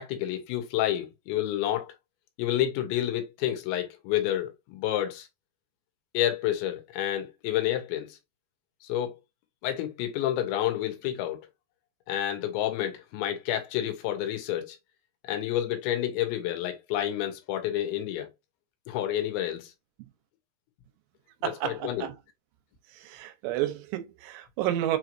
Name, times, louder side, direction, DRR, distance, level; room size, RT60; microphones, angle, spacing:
voice 1, 0.0-1.9 2.4-5.3 6.1-8.2 8.8-9.1 9.6-11.4 12.1-14.8 15.2-18.3 18.9-19.7 21.4-22.1, left 12 dB, 90° left, 3.3 m, -29 dB
voice 2, 21.4-22.1 23.1-25.0, right 13 dB, 80° right, 2.8 m, -30 dB
6.7 x 3.0 x 2.6 m
omnidirectional pair, 5.1 m